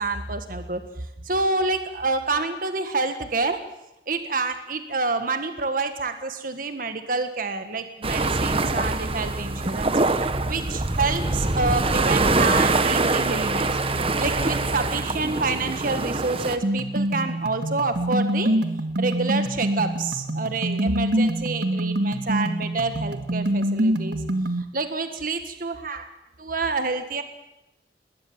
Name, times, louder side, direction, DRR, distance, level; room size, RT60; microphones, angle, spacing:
voice 1, 0.0-3.6 4.1-18.6 19.0-24.2 24.6-26.1 26.4-27.2, right 3 dB, 50° right, 8 dB, 1.6 m, -28 dB
sound 1, 8.0-16.6, right 2 dB, 35° right, 1.1 m, -24 dB
sound 2, 16.6-24.6, right 1 dB, 70° right, 1.7 m, -25 dB
20.5 x 19.0 x 7.4 m, 0.89 s
head